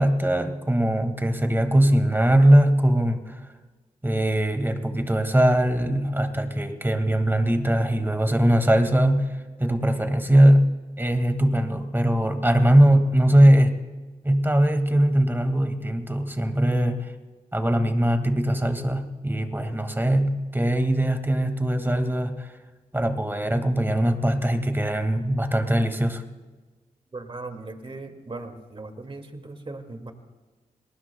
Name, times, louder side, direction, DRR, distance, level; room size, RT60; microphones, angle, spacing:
voice 1, 0.0-3.4 4.0-9.3 9.6-13.7 14.2-17.1 17.5-22.5 22.9-26.2, right 1 dB, 15° right, 6 dB, 2.0 m, -21 dB
voice 2, 27.1-30.1, right 2 dB, 35° right, 5 dB, 2.2 m, -38 dB
28.0 x 19.5 x 2.3 m, 1.3 s
supercardioid pair, 45°, 15 cm